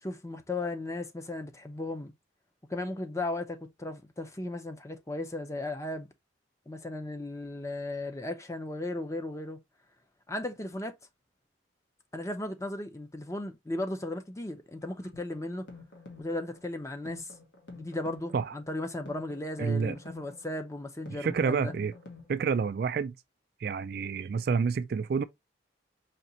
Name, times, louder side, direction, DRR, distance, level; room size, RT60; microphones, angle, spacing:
voice 1, 0.0-2.1 2.7-6.1 6.7-9.6 10.3-11.0 12.1-15.7 16.2-17.3 17.7-21.7, left 2 dB, 15° left, 0.6 m, -36 dB
sound 1, 14.8-22.8, left 3 dB, 65° left, 1.4 m, -50 dB
voice 2, 19.6-20.0 21.2-21.9 22.3-23.2 23.6-25.2, right 5 dB, 55° right, 0.3 m, -28 dB
5.0 x 2.9 x 2.7 m
head